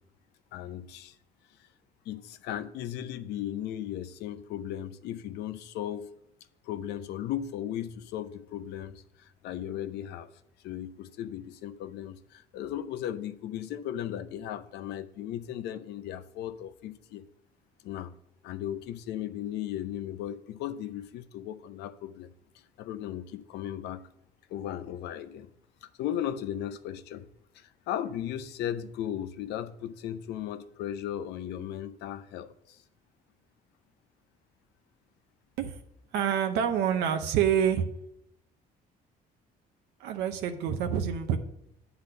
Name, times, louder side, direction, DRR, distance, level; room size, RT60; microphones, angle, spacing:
voice 1, 0.5-1.1 2.1-6.1 6.6-10.3 10.6-17.2 17.8-18.1 18.4-22.3 22.8-24.0 24.5-25.5 25.8-27.2 27.5-32.8, left 11 dB, 80° left, 0.6 m, -36 dB
voice 2, 36.1-37.9 40.0-41.4, right 8 dB, 85° right, 0.7 m, -27 dB
8.2 x 4.0 x 6.5 m
cardioid pair, 110°, 17 cm